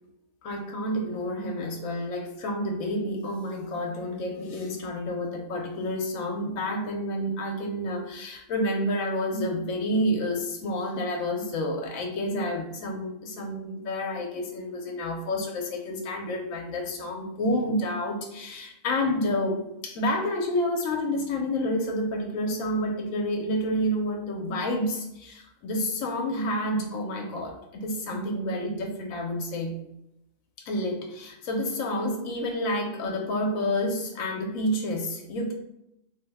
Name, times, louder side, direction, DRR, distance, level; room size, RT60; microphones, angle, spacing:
voice 1, 0.4-29.7 30.6-35.5, left 1 dB, 75° left, 3 dB, 1.0 m, -29 dB
3.2 x 2.1 x 3.3 m, 0.83 s
omnidirectional pair, 1.5 m